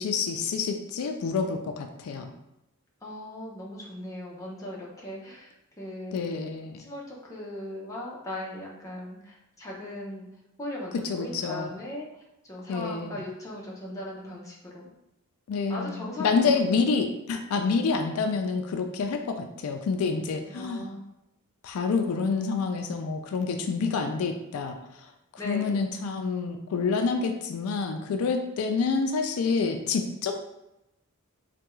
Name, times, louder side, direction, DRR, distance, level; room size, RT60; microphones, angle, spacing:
voice 1, 0.0-2.3 6.1-6.8 10.9-11.7 12.7-13.2 15.5-20.9 21.6-25.1 25.4-30.4, left 4 dB, 80° left, 5 dB, 0.3 m, -28 dB
voice 2, 3.0-6.2 6.8-10.3 10.6-14.8 15.7-16.9 20.5-21.1 25.4-25.8, left 1 dB, 15° left, -4 dB, 0.6 m, -38 dB
3.4 x 2.2 x 3.0 m, 0.90 s
head